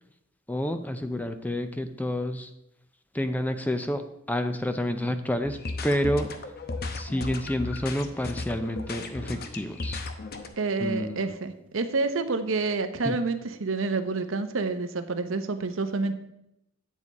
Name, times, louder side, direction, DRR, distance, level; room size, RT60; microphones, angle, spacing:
voice 1, 0.5-2.5 3.1-4.0 4.3-5.6 5.8-6.3 6.9-10.0 10.8-11.4 13.0-13.2, left 1 dB, 10° left, 8 dB, 0.5 m, -29 dB
sound 1, 5.4-10.5, left 3 dB, 50° left, 0.9 m, -35 dB
voice 2, 10.6-16.1, right 3 dB, 75° right, 9 dB, 0.8 m, -28 dB
9.5 x 7.3 x 4.2 m, 0.84 s
head